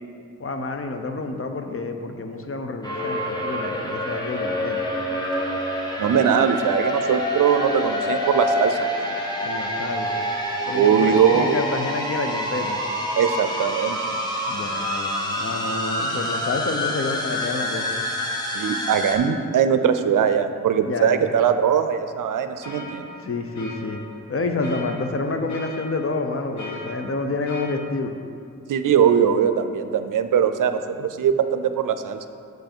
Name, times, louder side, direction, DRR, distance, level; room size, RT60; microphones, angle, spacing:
voice 1, 0.4-4.8 9.4-10.2 10.7-12.8 14.5-17.8 20.8-21.3 23.0-24.0 24.3-28.2, left 3 dB, 45° left, 5 dB, 0.8 m, -28 dB
sound 1, 2.8-19.2, equal, 10° left, 1.3 m, -27 dB
voice 2, 6.0-9.2 10.7-11.6 13.2-14.2 18.5-23.1 28.7-32.3, right 8 dB, 75° right, 9 dB, 0.5 m, -21 dB
sound 2, 22.6-27.8, left 2 dB, 65° left, 1.1 m, -40 dB
7.8 x 5.4 x 4.4 m, 2.4 s
cardioid pair, 55°, 32 cm